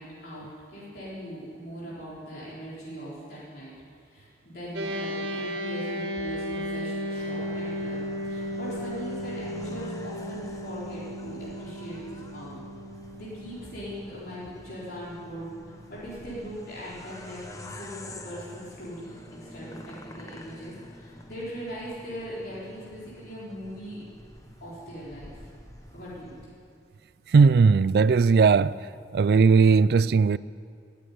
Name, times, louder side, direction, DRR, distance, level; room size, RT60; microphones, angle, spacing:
voice 1, 0.0-3.7 4.0-12.6 13.2-24.0 24.6-25.5 25.9-26.4, equal, 60° left, 4.2 m, -40 dB
sound 1, 4.7-16.3, equal, 85° right, 1.7 m, -35 dB
sound 2, 7.1-26.5, left 1 dB, 20° left, 1.0 m, -47 dB
voice 2, 27.3-28.7 29.1-30.4, right 5 dB, 60° right, 0.3 m, -18 dB
14.0 x 9.8 x 9.3 m
head